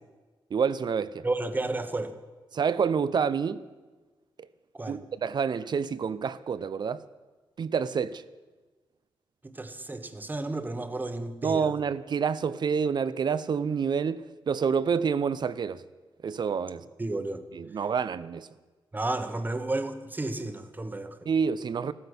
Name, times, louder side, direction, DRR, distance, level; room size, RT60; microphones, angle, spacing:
voice 1, 0.5-1.3 2.5-3.6 4.9-7.0 7.6-8.2 11.4-15.8 16.2-16.9 17.5-18.5 21.3-21.9, right 6 dB, 55° right, 0.7 m, -28 dB
voice 2, 1.2-2.1 4.7-5.0 9.4-11.7 17.0-17.4 18.9-21.3, right 2 dB, 20° right, 1.3 m, -32 dB
15.0 x 13.5 x 6.2 m
cardioid pair, 85°, 9 cm